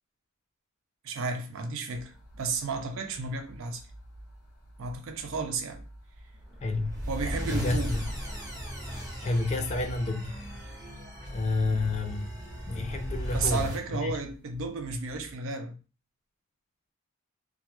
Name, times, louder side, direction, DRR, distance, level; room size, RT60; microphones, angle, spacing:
voice 1, 1.0-3.8 4.8-5.8 7.1-7.9 13.3-15.8, right 3 dB, 65° right, 0.5 m, -33 dB
sound 1, 1.9-15.3, right 1 dB, 85° left, 0.7 m, -51 dB
sound 2, 6.4-13.8, equal, 15° right, 1.0 m, -36 dB
voice 2, 6.6-7.0 7.4-8.1 9.2-10.3 11.3-12.3 12.6-14.1, left 3 dB, 30° left, 0.3 m, -30 dB
2.2 x 2.2 x 2.9 m
head